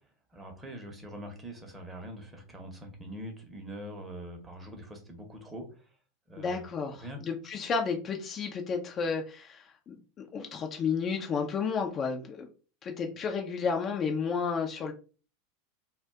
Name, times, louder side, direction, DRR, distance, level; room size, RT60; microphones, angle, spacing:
voice 1, 0.3-5.9 6.3-7.2, equal, 15° right, 3 dB, 0.8 m, -43 dB
voice 2, 6.4-10.0 10.3-12.5 12.8-14.9, left 5 dB, 30° left, 3 dB, 0.4 m, -32 dB
2.5 x 2.2 x 3.5 m, 0.36 s
figure-of-eight pair, 85°, 0 cm